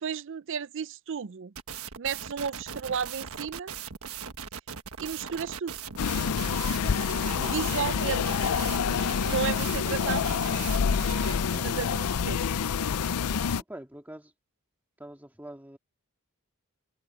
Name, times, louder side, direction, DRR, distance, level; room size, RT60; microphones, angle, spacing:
voice 1, 0.0-1.5 2.0-3.7 5.0-5.8 7.4-8.5 9.2-10.5 11.6-12.4, right 7 dB, 55° right, 0.5 m, -33 dB
sound 1, 1.6-11.3, right 7 dB, 75° right, 1.4 m, -39 dB
sound 2, 6.0-13.6, left 6 dB, 85° left, 0.5 m, -27 dB
voice 2, 11.5-12.0 13.7-14.3 15.0-15.8, right 1 dB, 10° right, 1.9 m, -44 dB
open air
head